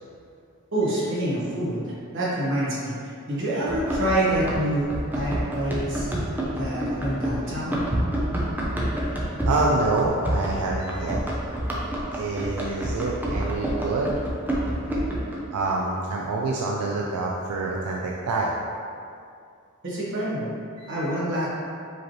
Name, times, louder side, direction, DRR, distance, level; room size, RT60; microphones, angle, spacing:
voice 1, 0.7-6.1 6.6-7.8 19.8-20.5 20.9-21.5, right 1 dB, 60° right, -7 dB, 1.2 m, -27 dB
Run, 3.7-15.4, right 1 dB, 10° right, 0.5 m, -28 dB
voice 2, 9.5-11.2 12.1-14.2 15.5-18.5 20.8-21.1, right 3 dB, 90° right, -2 dB, 0.4 m, -26 dB
5.0 x 3.1 x 2.9 m, 2.4 s
head